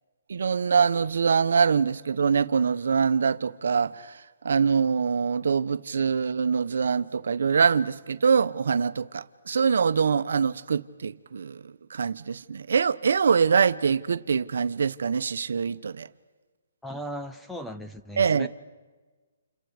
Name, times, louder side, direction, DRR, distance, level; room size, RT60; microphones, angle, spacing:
voice 1, 0.3-4.2 4.4-16.1 18.2-18.5, right 6 dB, 70° right, 1.0 m, -24 dB
voice 2, 16.8-18.5, equal, 5° left, 0.7 m, -37 dB
29.5 x 29.0 x 5.0 m
hypercardioid pair, 160°, 0 cm